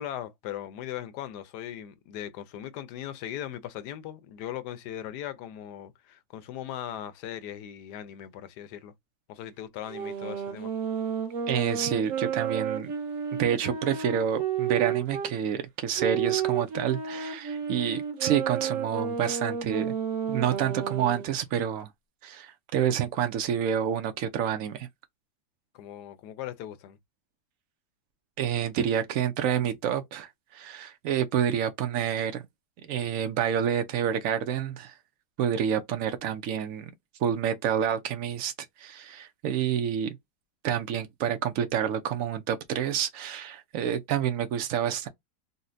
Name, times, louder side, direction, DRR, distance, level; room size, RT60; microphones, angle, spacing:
voice 1, 0.0-8.9 9.3-10.7 25.7-27.0, left 11 dB, 75° left, 1.0 m, -39 dB
sound 1, 9.9-15.3 16.0-21.3, right 7 dB, 60° right, 1.0 m, -31 dB
voice 2, 11.5-12.9 13.4-19.9 20.3-21.9 22.2-24.9 28.4-32.4 32.9-35.0 35.4-36.9 37.2-38.5 38.8-40.2 40.6-45.1, right 9 dB, 85° right, 0.7 m, -28 dB
4.0 x 2.0 x 2.5 m
omnidirectional pair, 2.0 m